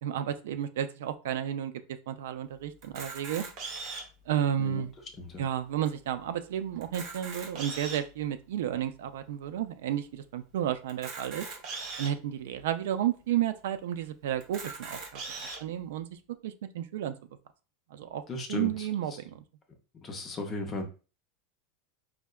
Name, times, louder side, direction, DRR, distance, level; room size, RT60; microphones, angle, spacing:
voice 1, 0.0-1.7 2.1-3.5 4.3-4.9 5.4-11.5 12.0-15.2 15.6-16.1 16.4-17.1 17.9-18.2 18.5-19.4, right 10 dB, 80° right, 10 dB, 0.3 m, -32 dB
Camera, 2.8-4.2 4.9-5.0 5.2-5.3 5.9-6.0 6.8-8.1 8.8-8.9 10.9-12.1 12.8-12.9 13.2-13.3 14.4-15.6, right 4 dB, 35° right, 0.7 m, -39 dB
voice 2, 18.3-18.9 20.0-20.8, left 2 dB, 15° left, 3 dB, 0.5 m, -36 dB
4.5 x 2.1 x 2.2 m, 0.34 s
supercardioid pair, 180°, 0 cm